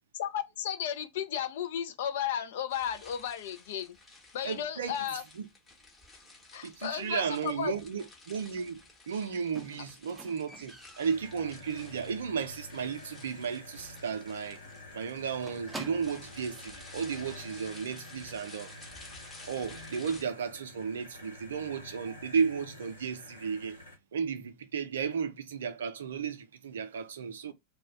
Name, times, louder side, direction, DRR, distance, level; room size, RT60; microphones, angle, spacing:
voice 1, 0.2-4.0 4.3-5.2 6.5-7.8, left 9 dB, 55° left, 0.4 m, -34 dB
sound 1, 2.7-20.2, left 2 dB, 15° left, 1.0 m, -54 dB
voice 2, 4.4-5.0 5.4-5.5 6.6-14.6 14.9-18.8 19.5-23.8 24.1-27.5, right 6 dB, 65° right, 0.4 m, -34 dB
Squeak, 9.6-12.3 12.7-13.1 13.3-13.4 13.8-13.9 14.2-14.3 14.6-16.4 17.2-17.3, right 2 dB, 10° right, 0.5 m, -48 dB
sound 2, 11.0-24.0, left 2 dB, 80° left, 1.0 m, -49 dB
2.3 x 2.1 x 3.6 m
figure-of-eight pair, 90°, 0 cm